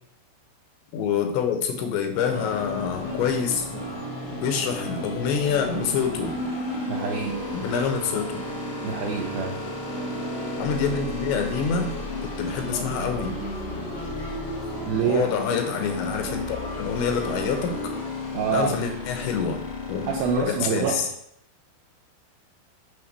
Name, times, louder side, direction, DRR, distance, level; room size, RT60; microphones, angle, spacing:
voice 1, 0.9-4.0 4.4-6.3 7.5-8.4 10.6-11.9 12.2-13.4 15.0-17.9 18.5-20.1 20.4-21.1, left 6 dB, 90° left, 6 dB, 3.3 m, -27 dB
sound 1, 2.1-20.7, right 1 dB, 25° left, 1.4 m, -37 dB
sound 2, 2.3-20.4, left 3 dB, 70° left, 3.4 m, -34 dB
voice 2, 6.9-7.4 8.8-9.6 14.9-15.3 18.3-18.7 20.1-21.0, right 6 dB, 80° right, 1 dB, 2.1 m, -26 dB
7.6 x 3.6 x 6.5 m, 0.70 s
omnidirectional pair, 5.1 m